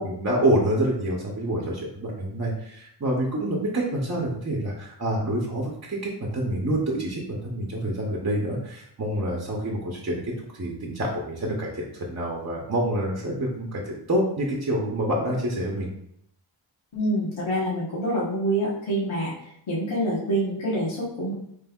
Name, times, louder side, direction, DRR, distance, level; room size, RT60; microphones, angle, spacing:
voice 1, 0.0-15.9, right 1 dB, 35° right, -2 dB, 0.9 m, -27 dB
voice 2, 16.9-19.3 19.7-21.3, right 1 dB, 75° left, -8 dB, 1.3 m, -26 dB
5.3 x 3.3 x 2.3 m, 0.72 s
wide cardioid pair, 70°, 47 cm